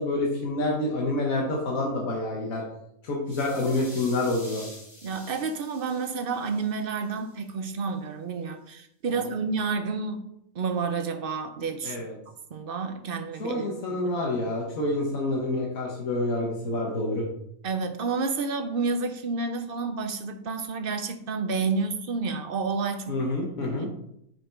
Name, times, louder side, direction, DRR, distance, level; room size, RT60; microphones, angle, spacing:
voice 1, 0.0-2.6 3.0-4.6 9.1-9.2 11.8-12.1 13.4-17.3 23.1-23.9, left 2 dB, 90° left, -2 dB, 1.7 m, -28 dB
sound 1, 3.3-7.3, left 1 dB, 40° left, 2.3 m, -48 dB
voice 2, 5.0-10.3 10.5-12.0 12.5-13.7 13.9-14.1 17.6-23.2 23.6-23.9, right 4 dB, 55° right, 8 dB, 0.7 m, -30 dB
6.1 x 5.0 x 4.5 m, 0.75 s
omnidirectional pair, 1.4 m